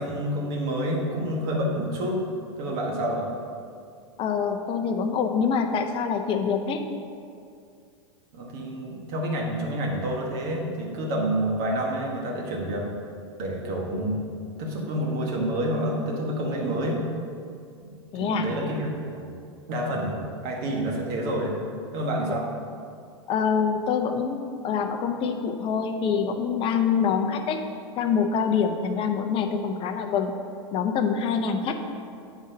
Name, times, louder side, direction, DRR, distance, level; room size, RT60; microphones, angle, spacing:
voice 1, 0.0-2.2 2.6-3.3 8.3-12.9 13.4-14.2 14.6-17.0 17.8-17.9 18.2-19.3 19.7-21.6 21.9-22.4, right 1 dB, 55° right, -2 dB, 1.7 m, -28 dB
voice 2, 4.2-6.8 18.1-18.5 23.3-27.6 28.0-30.3 30.7-31.8, left 6 dB, 40° left, 6 dB, 0.7 m, -25 dB
8.3 x 3.9 x 5.2 m, 2.3 s
hypercardioid pair, 95°, 15 cm